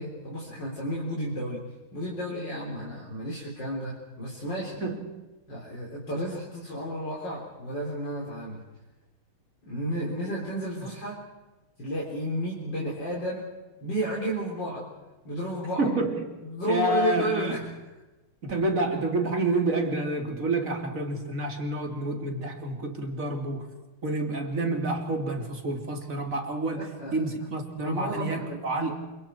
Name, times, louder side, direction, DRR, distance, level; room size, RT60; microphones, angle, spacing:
voice 1, 0.0-4.8 5.5-8.6 9.7-11.3 11.8-13.5 13.8-14.9 15.2-16.0 16.4-17.7 26.8-27.2 27.8-28.9, equal, 55° left, -5 dB, 4.5 m, -32 dB
voice 2, 15.8-16.3 16.7-17.6 18.4-23.7 24.0-28.9, right 2 dB, 40° right, 3 dB, 3.4 m, -28 dB
29.5 x 26.0 x 4.6 m, 1.1 s
omnidirectional pair, 2.3 m